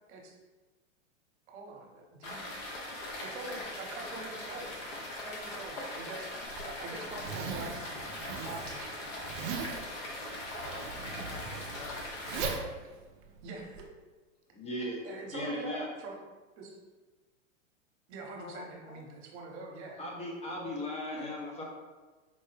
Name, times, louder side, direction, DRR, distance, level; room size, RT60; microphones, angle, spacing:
voice 1, 1.5-2.5 3.2-6.3 6.6-8.1 8.5-9.3 10.6-11.0 12.8-12.9 13.4-13.9 15.0-16.2 16.6-16.8 18.1-20.0 21.2-21.3, right 3 dB, 60° right, 0 dB, 0.9 m, -45 dB
sound 1, 2.2-12.6, left 1 dB, 50° left, 0.9 m, -41 dB
Zipper (clothing), 6.4-13.9, right 5 dB, 40° right, 0.5 m, -40 dB
voice 2, 10.6-10.9 11.3-12.8 18.4-19.1, left 5 dB, 85° left, 5 dB, 0.6 m, -49 dB
voice 3, 14.5-15.9 20.0-21.6, left 1 dB, 15° left, -2 dB, 0.6 m, -37 dB
4.5 x 2.1 x 3.2 m, 1.3 s
hypercardioid pair, 120°, 39 cm